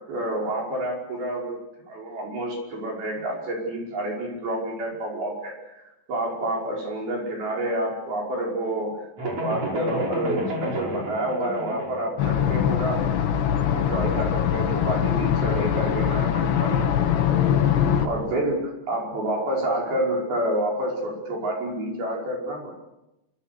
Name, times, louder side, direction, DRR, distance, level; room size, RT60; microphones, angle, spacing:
voice 1, 0.1-1.6 1.9-13.1 13.7-16.8 18.0-22.7, right 1 dB, 60° right, -1 dB, 7.1 m, -28 dB
sound 1, 9.2-12.1, right 1 dB, 40° right, 6.6 m, -30 dB
sound 2, 12.2-18.1, left 9 dB, 80° left, 4.1 m, -22 dB
27.5 x 25.0 x 6.8 m, 0.93 s
omnidirectional pair, 4.9 m